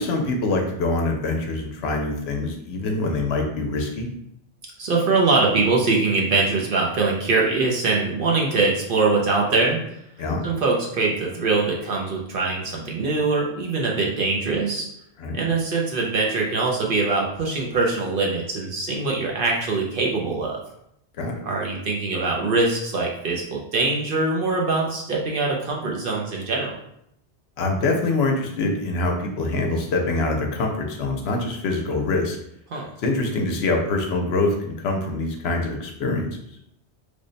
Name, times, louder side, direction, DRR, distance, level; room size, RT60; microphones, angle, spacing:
voice 1, 0.0-4.1 10.2-10.4 15.2-15.4 21.2-21.4 27.6-32.4 33.0-36.3, left 2 dB, 70° left, 2 dB, 0.8 m, -24 dB
voice 2, 4.8-9.8 10.4-14.9 15.3-20.6 21.4-26.8 32.7-32.9, right 3 dB, 60° right, -1 dB, 0.7 m, -23 dB
3.3 x 2.1 x 3.8 m, 0.76 s
omnidirectional pair, 1.2 m